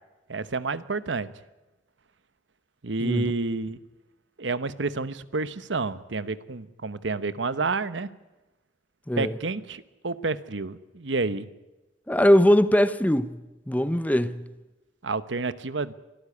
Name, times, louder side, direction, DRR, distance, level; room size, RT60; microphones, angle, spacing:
voice 1, 0.3-1.3 2.8-3.8 4.4-8.1 9.2-11.5 15.0-15.9, right 3 dB, 85° right, 1.0 m, -29 dB
voice 2, 3.0-3.3 9.1-9.3 12.1-13.4 13.7-14.5, equal, 10° left, 0.8 m, -21 dB
24.0 x 13.5 x 9.8 m
head